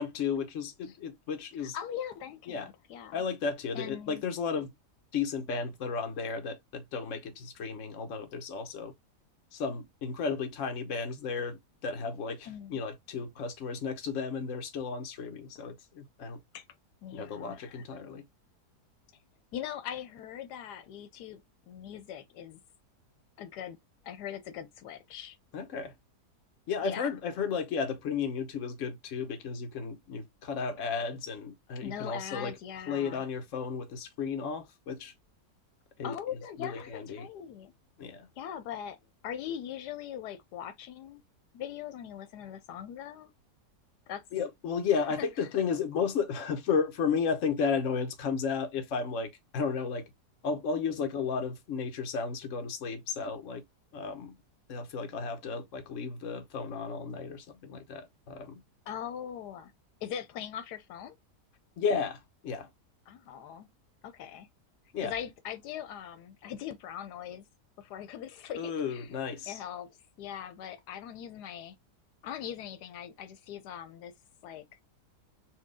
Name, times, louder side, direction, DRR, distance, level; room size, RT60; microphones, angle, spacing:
voice 1, 0.0-1.8 2.5-2.7 3.1-4.7 5.1-8.9 9.5-16.4 17.1-18.3 25.5-25.9 26.7-32.5 32.9-35.1 36.0-36.1 36.6-37.3 38.0-38.3 44.3-50.1 50.4-53.6 53.9-54.4 54.7-58.6 61.8-62.7 64.9-65.1 68.6-69.6, left 5 dB, 55° left, 1.2 m, -33 dB
voice 2, 1.6-3.2 3.7-4.2 12.5-12.8 15.5-15.7 16.5-16.6 17.0-17.8 19.5-22.6 23.4-23.8 24.0-25.4 26.8-27.1 31.8-33.2 36.0-37.7 38.4-41.2 41.5-43.3 44.1-44.2 45.2-45.5 58.9-59.7 60.0-61.2 63.1-63.7 64.0-64.5 65.0-67.4 67.8-69.1 69.5-71.7 72.2-74.1 74.4-74.6, left 9 dB, 85° left, 1.2 m, -41 dB
4.5 x 2.3 x 3.5 m
omnidirectional pair, 1.7 m